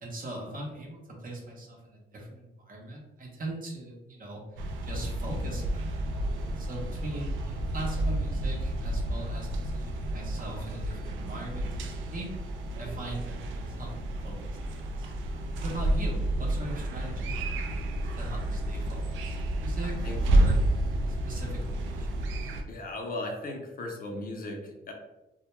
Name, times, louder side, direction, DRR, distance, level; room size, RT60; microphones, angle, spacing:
voice 1, 0.0-6.0 6.5-12.3 12.7-15.1 15.5-20.6 21.0-22.1, right 1 dB, 45° right, 0 dB, 0.8 m, -41 dB
sound 1, 4.6-22.6, right 1 dB, 80° right, 0.4 m, -30 dB
voice 2, 19.8-20.2 22.7-24.9, left 2 dB, 45° left, 2 dB, 0.5 m, -37 dB
2.2 x 2.1 x 3.0 m, 0.99 s
cardioid pair, 90°, 20 cm